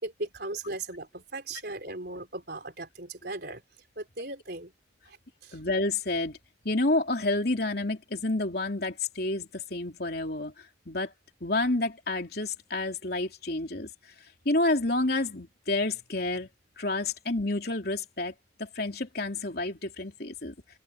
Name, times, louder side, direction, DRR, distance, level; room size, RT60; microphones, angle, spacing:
voice 1, 0.0-3.6 4.0-4.7 5.1-5.2 5.4-5.6, right 2 dB, 55° right, 4.5 m, -37 dB
voice 2, 5.5-6.4 6.6-11.1 11.4-13.9 14.4-16.5 16.8-20.5, left 2 dB, 55° left, 3.3 m, -29 dB
head